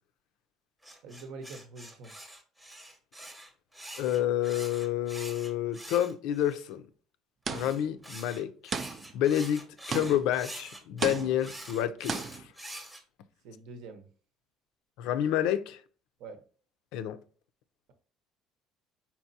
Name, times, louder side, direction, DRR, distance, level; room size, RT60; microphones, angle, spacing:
sound 1, 0.8-6.7 7.5-13.0, right 1 dB, 5° right, 0.8 m, -45 dB
voice 1, 1.0-2.1 13.4-14.0 16.2-16.4, right 3 dB, 75° right, 0.8 m, -45 dB
voice 2, 4.0-6.8 7.5-8.5 9.1-12.2 15.0-15.8 16.9-17.2, left 11 dB, 80° left, 0.4 m, -29 dB
sound 2, 7.5-8.0 8.7-9.3 9.9-10.4 11.0-11.6 12.1-12.5, right 5 dB, 30° right, 0.3 m, -35 dB
4.6 x 4.2 x 2.7 m
cardioid pair, 145°, 0 cm